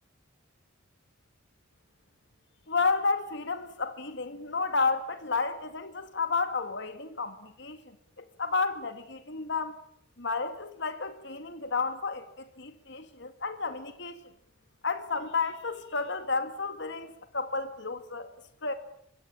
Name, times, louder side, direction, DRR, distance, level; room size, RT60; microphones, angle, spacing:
voice 1, 2.7-7.8 8.2-9.8 10.2-14.2 14.8-18.3 18.6-18.7, left 4 dB, 60° left, 2.1 m, -31 dB
25.5 x 22.5 x 8.9 m
head